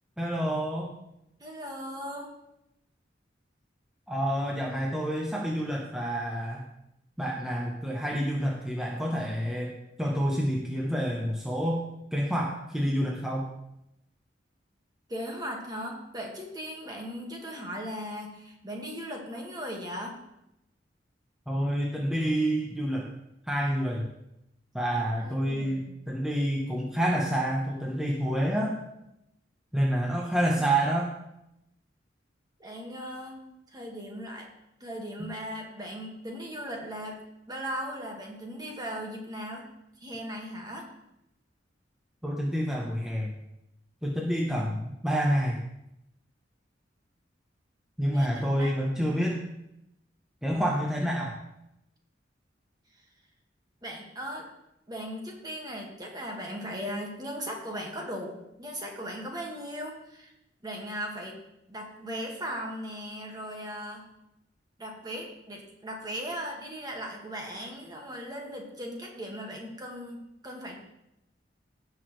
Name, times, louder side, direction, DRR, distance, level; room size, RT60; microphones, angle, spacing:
voice 1, 0.2-0.9 4.1-6.7 7.2-13.5 21.5-23.1 23.5-24.1 24.7-28.8 29.7-31.1 35.2-35.3 42.2-43.3 44.0-45.6 48.0-49.4 50.4-51.3, equal, 5° right, -2 dB, 0.9 m, -28 dB
voice 2, 1.4-2.3 15.1-20.2 25.2-25.9 32.6-33.4 33.7-34.5 34.8-39.7 40.0-40.9 48.1-49.1 53.8-54.5 54.9-60.3 60.6-61.4 61.7-64.1 64.8-70.7, equal, 20° right, 0 dB, 1.7 m, -38 dB
16.5 x 6.3 x 3.2 m, 0.86 s
head